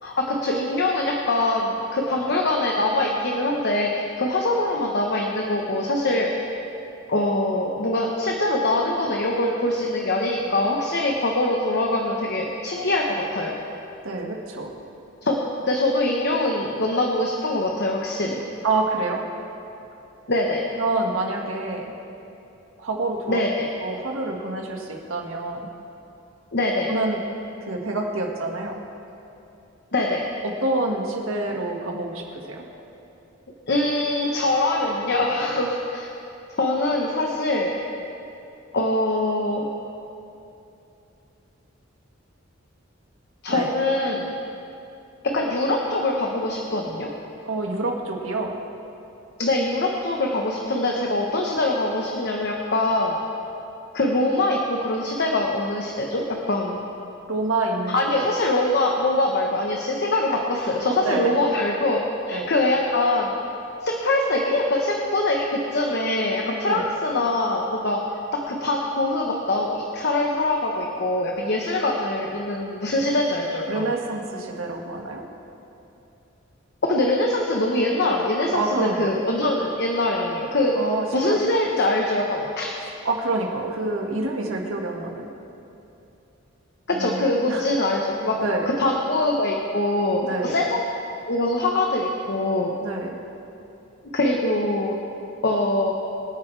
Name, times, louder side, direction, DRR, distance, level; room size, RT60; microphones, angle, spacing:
voice 1, 0.0-6.3 7.1-13.6 15.2-15.4 15.7-18.4 20.3-20.6 23.3-23.7 26.5-26.9 29.9-30.2 33.7-36.1 36.6-37.7 38.7-39.6 43.4-44.3 45.2-47.1 49.4-53.2 53.9-56.8 57.9-63.3 63.8-68.0 68.3-73.9 76.8-80.7 81.1-82.7 86.9-88.4 88.6-90.8 91.3-92.7 94.1-95.0 95.4-95.9, left 2 dB, 55° left, 0 dB, 1.1 m, -23 dB
voice 2, 14.0-14.7 18.6-19.2 20.8-21.9 22.8-23.4 23.8-25.7 26.9-27.2 27.7-28.8 30.4-32.6 43.5-43.7 47.4-48.6 57.3-58.3 60.9-61.3 62.3-62.5 66.7-66.8 73.7-75.2 78.5-79.1 80.8-81.4 83.0-85.3 86.9-87.7 88.4-88.7 90.2-90.5 92.8-93.2, right 2 dB, 85° right, 1 dB, 1.8 m, -27 dB
25.0 x 9.0 x 3.4 m, 2.8 s
head